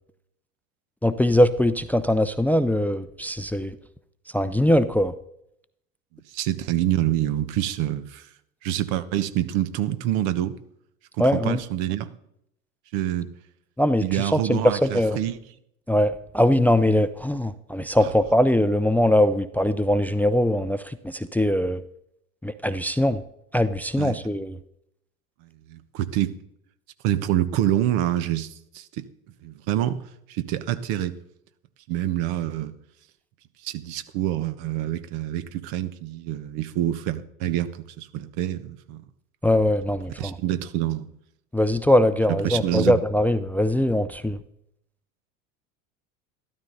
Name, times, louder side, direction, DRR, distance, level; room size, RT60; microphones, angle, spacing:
voice 1, 1.0-3.7 4.3-5.1 11.2-11.6 13.8-14.0 14.3-15.2 15.9-21.8 22.4-23.2 23.5-24.6 39.4-40.3 41.5-44.4, left 1 dB, 5° left, 14 dB, 0.5 m, -21 dB
voice 2, 6.1-8.3 8.6-10.6 11.2-12.2 12.9-13.3 14.0-15.4 18.0-18.1 24.0-24.2 25.4-26.4 27.0-29.1 29.4-30.0 30.3-31.1 31.9-32.7 33.6-39.0 40.2-41.1 42.3-43.0, right 12 dB, 60° right, 12 dB, 1.2 m, -27 dB
13.0 x 12.5 x 4.0 m, 0.76 s
hypercardioid pair, 80°, 40 cm